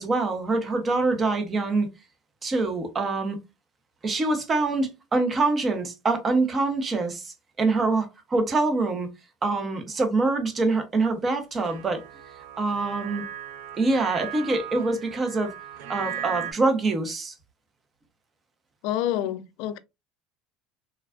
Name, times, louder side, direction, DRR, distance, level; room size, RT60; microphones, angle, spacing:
voice 1, 0.0-1.9 2.4-3.4 4.0-9.1 9.4-12.0 12.6-13.2 13.8-15.5 15.9-17.3, right 3 dB, 20° right, 0.6 m, -25 dB
sound 1, 11.6-16.5, right 11 dB, 70° right, 0.4 m, -37 dB
voice 2, 18.8-19.8, left 12 dB, 60° left, 0.3 m, -28 dB
3.2 x 2.3 x 2.2 m
cardioid pair, 170°, 0 cm